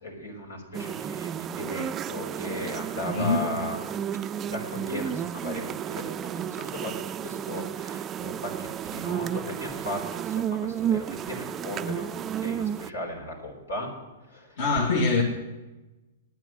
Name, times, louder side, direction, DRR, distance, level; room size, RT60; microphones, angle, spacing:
voice 1, 0.0-3.8 4.5-13.9 14.3-14.6, left 1 dB, 90° left, 0 dB, 4.3 m, -36 dB
sound 1, 0.7-12.9, right 9 dB, 25° right, 0.3 m, -32 dB
voice 2, 3.1-3.5 14.6-15.2, left 3 dB, 60° left, 0 dB, 2.1 m, -23 dB
9.4 x 9.1 x 10.0 m, 1.1 s
hypercardioid pair, 125°, 0 cm